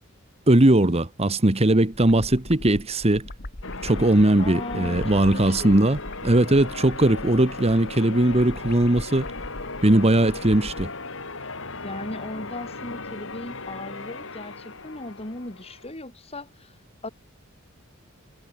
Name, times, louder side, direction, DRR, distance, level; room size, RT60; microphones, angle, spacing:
voice 1, 0.5-3.3 3.8-9.3 9.8-10.9, right 1 dB, 30° right, 1.3 m, -19 dB
sound 1, 1.9-10.9, left 1 dB, 45° left, 2.2 m, -40 dB
Church bell, 3.6-15.9, left 3 dB, 65° left, 6.4 m, -37 dB
voice 2, 4.4-5.0 5.3-5.8 11.8-16.7 17.0-17.1, left 2 dB, 30° left, 3.4 m, -37 dB
head